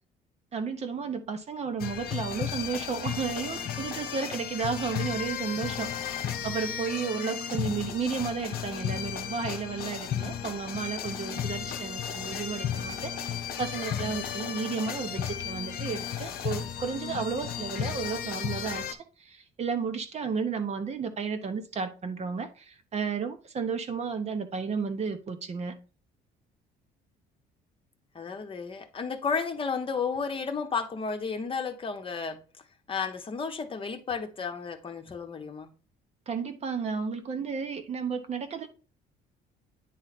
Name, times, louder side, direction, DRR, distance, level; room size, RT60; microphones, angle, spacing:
voice 1, 0.5-18.8 19.2-25.7 36.3-38.7, right 5 dB, 40° right, 0.9 m, -33 dB
sound 1, 1.8-18.9, left 8 dB, 60° left, 0.9 m, -34 dB
voice 2, 28.1-32.4 32.9-35.7, left 5 dB, 30° left, 0.9 m, -32 dB
9.3 x 3.2 x 4.1 m
cardioid pair, 110°, 17 cm